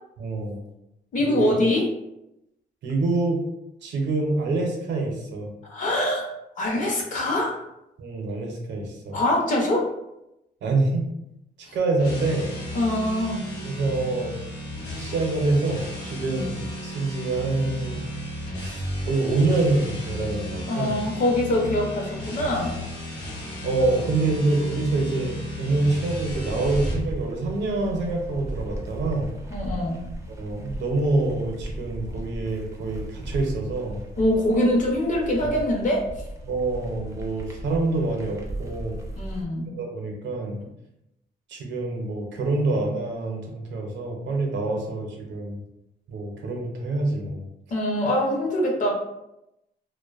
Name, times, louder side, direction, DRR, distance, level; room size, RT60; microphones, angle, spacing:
voice 1, 0.2-0.6 1.2-1.5 2.8-3.4 3.8-5.5 8.0-9.2 10.6-11.1 11.7-12.5 13.5-14.4 15.0-18.0 18.6-20.9 23.6-29.3 30.3-34.0 36.4-39.0 39.8-40.6 41.5-45.6 46.1-47.4, right 2 dB, 85° right, 1 dB, 0.6 m, -26 dB
voice 2, 1.1-1.9 5.7-6.3 6.6-7.6 9.1-9.9 11.7-11.8 12.7-13.4 16.3-16.4 20.7-22.8 29.5-30.0 34.2-36.0 39.2-39.7 47.7-48.9, left 1 dB, 45° left, -1 dB, 0.6 m, -23 dB
sound 1, 11.9-27.1, equal, 70° left, 0.8 m, -34 dB
sound 2, 26.2-39.4, right 1 dB, 15° right, 0.4 m, -36 dB
2.5 x 2.1 x 2.3 m, 0.88 s
cardioid pair, 145°, 18 cm